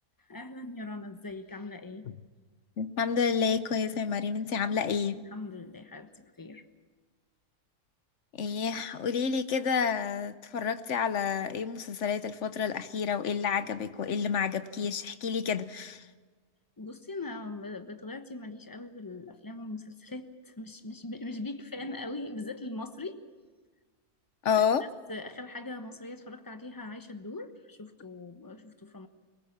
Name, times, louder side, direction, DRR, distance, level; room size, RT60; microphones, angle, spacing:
voice 1, 0.2-2.1 5.1-6.7 16.8-23.2 24.5-24.6 25.1-29.1, left 2 dB, 15° left, 1.0 m, -41 dB
voice 2, 2.8-5.2 8.3-16.1 24.4-24.9, left 6 dB, 55° left, 1.0 m, -29 dB
22.5 x 20.0 x 7.3 m
omnidirectional pair, 1.7 m